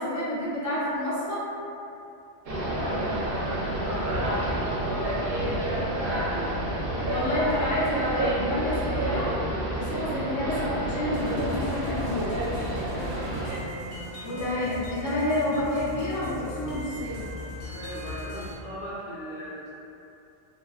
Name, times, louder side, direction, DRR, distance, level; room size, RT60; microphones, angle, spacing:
voice 1, 0.0-1.5 6.9-9.4 9.7-12.4 14.2-17.3, left 1 dB, 25° left, -10 dB, 0.4 m, -29 dB
sound 1, 2.5-13.6, right 1 dB, 65° right, 0.7 m, -29 dB
voice 2, 2.6-6.4 12.8-13.3 17.6-19.7, equal, 60° left, -10 dB, 0.9 m, -39 dB
sound 2, 11.1-18.5, left 1 dB, 85° left, 0.9 m, -38 dB
2.5 x 2.1 x 2.3 m, 2.7 s
omnidirectional pair, 1.1 m